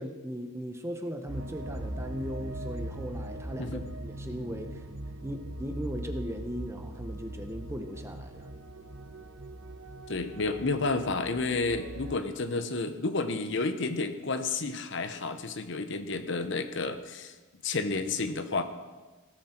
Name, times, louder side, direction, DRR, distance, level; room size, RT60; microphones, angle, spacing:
voice 1, 0.0-4.8 5.2-8.5, equal, 10° right, 6 dB, 0.9 m, -38 dB
sound 1, 1.3-12.1, right 1 dB, 60° right, 1.1 m, -40 dB
voice 2, 10.1-17.3 17.6-18.6, left 3 dB, 60° left, 8 dB, 1.0 m, -31 dB
17.0 x 13.5 x 4.5 m, 1.2 s
head